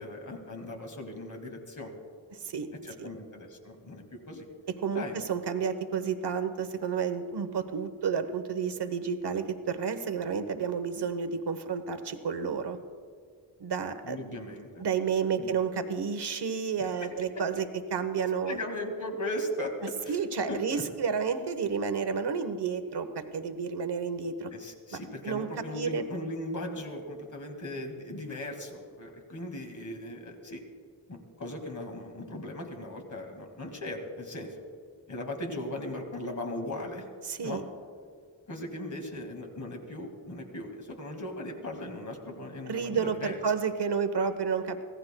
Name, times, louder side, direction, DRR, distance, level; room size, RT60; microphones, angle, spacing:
voice 1, 0.0-2.0 2.8-4.5 4.9-5.2 14.0-14.8 15.4-15.5 16.8-17.1 18.5-19.7 20.0-20.2 20.5-20.8 24.5-30.6 31.1-34.7 35.1-37.1 37.4-37.6 38.5-43.4, left 1 dB, 40° left, 3 dB, 2.1 m, -38 dB
voice 2, 2.3-2.7 3.0-3.1 4.8-12.8 13.6-14.3 14.8-18.6 20.1-24.5 24.9-25.5 25.7-26.0 37.2-37.6 42.7-44.8, right 6 dB, 60° right, 9 dB, 1.0 m, -31 dB
25.0 x 17.0 x 2.2 m, 2.1 s
wide cardioid pair, 165°, 45 cm